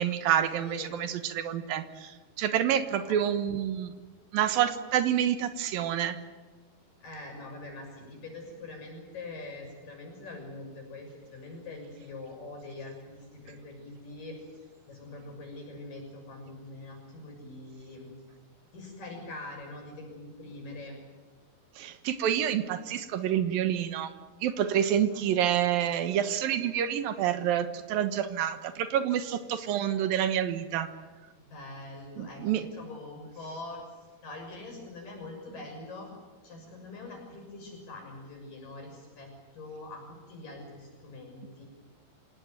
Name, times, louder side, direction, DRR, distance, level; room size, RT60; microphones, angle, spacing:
voice 1, 0.0-3.9 4.3-6.2 21.8-24.1 24.4-30.9 32.2-32.6, right 10 dB, 70° right, 10 dB, 3.0 m, -28 dB
voice 2, 0.6-1.0 7.0-18.1 18.7-21.0 25.1-25.2 31.3-33.8 34.2-36.1 36.4-41.6, left 2 dB, 60° left, 2 dB, 8.1 m, -44 dB
26.5 x 18.0 x 9.3 m, 1.4 s
omnidirectional pair, 4.4 m